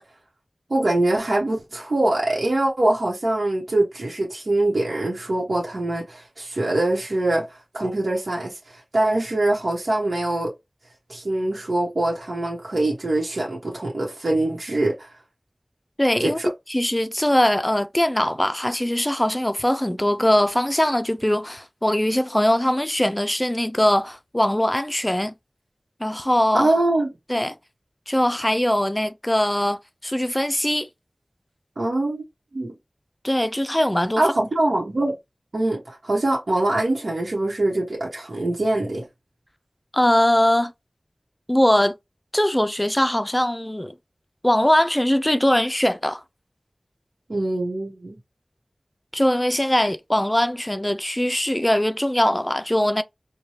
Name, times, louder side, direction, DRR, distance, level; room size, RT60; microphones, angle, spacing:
voice 1, 0.7-10.5 11.1-15.1 16.2-16.5 26.5-27.1 31.8-32.2 32.5-32.7 34.2-35.1 35.5-39.0 47.3-48.2, right 2 dB, 85° right, 1.0 m, -23 dB
voice 2, 16.0-16.4 16.7-25.3 26.0-26.7 27.3-27.6 28.1-30.9 33.2-34.2 39.9-40.7 41.5-42.0 42.3-43.9 44.4-46.2 49.1-53.0, left 1 dB, 15° left, 0.4 m, -21 dB
4.7 x 2.2 x 2.9 m
wide cardioid pair, 50°, 0 cm